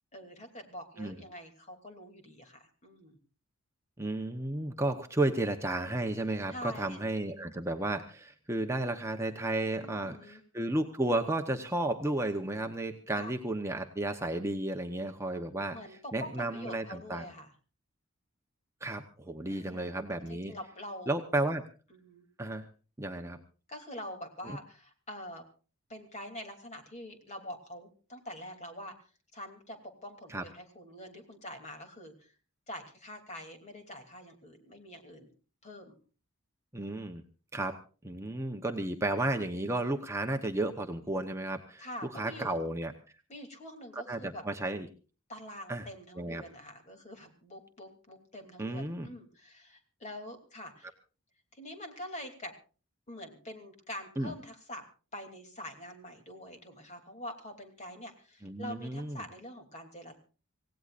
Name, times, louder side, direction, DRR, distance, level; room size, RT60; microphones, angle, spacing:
voice 1, 0.1-3.2 6.5-7.0 9.8-10.4 13.2-13.3 15.7-17.5 19.5-20.0 20.3-21.1 21.9-22.2 23.7-25.4 25.9-28.9 29.3-32.3 32.7-35.3 35.6-35.9 41.8-42.7 43.3-44.4 45.3-50.9 51.5-52.5 53.1-54.8 55.1-60.2, left 1 dB, 30° left, 5 dB, 3.0 m, -45 dB
voice 2, 4.0-15.8 16.1-17.3 18.8-20.5 21.1-21.6 22.4-22.7 23.0-23.4 24.5-24.6 30.3-30.4 36.7-37.2 37.5-37.7 38.0-42.9 44.1-44.9 45.7-45.9 46.2-46.4 48.6-49.1 54.2-54.3 58.4-59.2, right 2 dB, 15° right, 4 dB, 0.9 m, -33 dB
26.0 x 17.0 x 2.5 m, 0.37 s
head